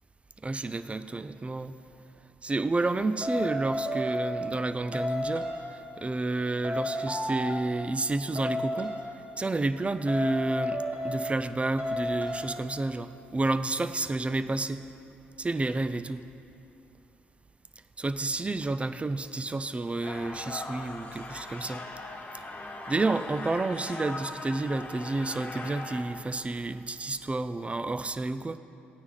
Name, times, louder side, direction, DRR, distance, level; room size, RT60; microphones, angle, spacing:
voice 1, 0.4-1.8 2.4-8.9 9.4-14.9 15.4-16.2 18.0-21.8 22.9-28.6, right 2 dB, 25° right, 13 dB, 0.6 m, -30 dB
sound 1, 3.2-4.6 4.9-5.8 6.6-7.9 8.4-9.1 10.1-11.5 11.8-12.5, left 1 dB, 40° right, 3.2 m, -32 dB
sound 2, 20.0-26.0, left 2 dB, 35° left, 2.1 m, -40 dB
15.5 x 9.5 x 4.1 m, 2.7 s
hypercardioid pair, 50°, 5 cm